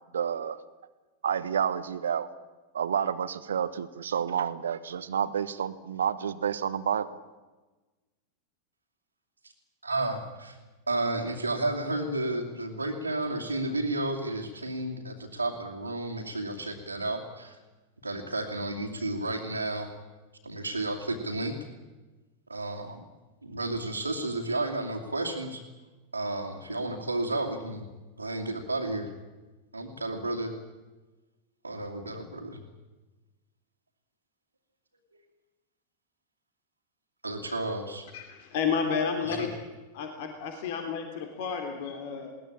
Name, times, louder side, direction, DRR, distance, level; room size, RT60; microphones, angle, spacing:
voice 1, 0.1-0.6 1.2-2.3 2.7-7.1, right 8 dB, 65° right, 13 dB, 1.2 m, -29 dB
voice 2, 9.8-10.6 10.9-17.5 18.0-19.9 20.4-21.6 22.5-23.0 23.4-25.6 26.1-27.8 28.2-29.1 29.7-30.5 31.6-32.6 37.2-38.1 39.2-39.5, right 2 dB, 80° right, -3 dB, 2.5 m, -32 dB
voice 3, 38.1-39.5 39.9-42.3, left 6 dB, 50° left, 5 dB, 3.1 m, -31 dB
21.5 x 18.5 x 8.8 m, 1.2 s
figure-of-eight pair, 90°, 0 cm